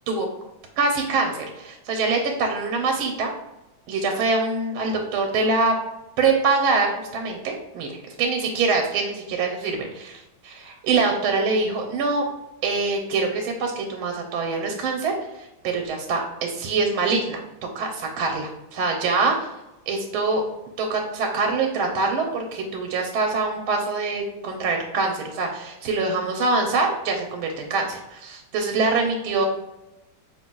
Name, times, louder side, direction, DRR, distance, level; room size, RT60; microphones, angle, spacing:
voice 1, 0.8-3.3 3.9-5.8 6.2-12.3 12.6-17.4 17.7-19.5 19.9-20.4 20.8-29.5, right 3 dB, 85° right, 2 dB, 1.5 m, -24 dB
5.0 x 2.9 x 2.2 m, 0.95 s
omnidirectional pair, 2.2 m